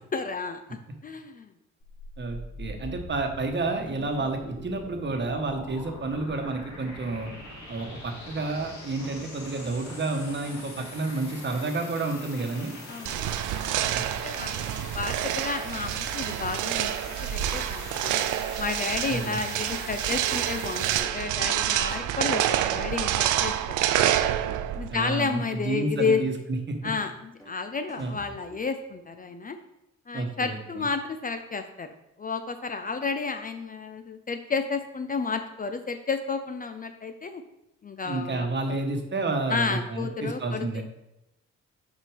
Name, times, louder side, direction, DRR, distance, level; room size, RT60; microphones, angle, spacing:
voice 1, 0.1-1.5 12.9-13.3 14.1-18.1 18.6-24.2 24.7-26.2 26.8-29.6 30.1-37.4 37.8-38.8 39.5-40.8, left 4 dB, 30° left, 8 dB, 0.5 m, -32 dB
sound 1, 1.8-21.0, left 2 dB, 70° left, 2.1 m, -42 dB
voice 2, 2.2-7.3 7.7-12.7 19.1-19.4 24.9-26.9 28.0-28.1 30.1-30.9 38.0-40.8, right 3 dB, 35° right, 4 dB, 1.2 m, -30 dB
sound 2, 13.1-24.9, right 12 dB, 80° right, 0.5 m, -27 dB
sound 3, 21.9-22.2 23.4-23.5 23.9-25.3 25.9-26.2 27.4-27.5 27.9-29.0, equal, 10° left, 1.5 m, -51 dB
6.2 x 4.3 x 5.0 m, 0.89 s
cardioid pair, 90°, 30 cm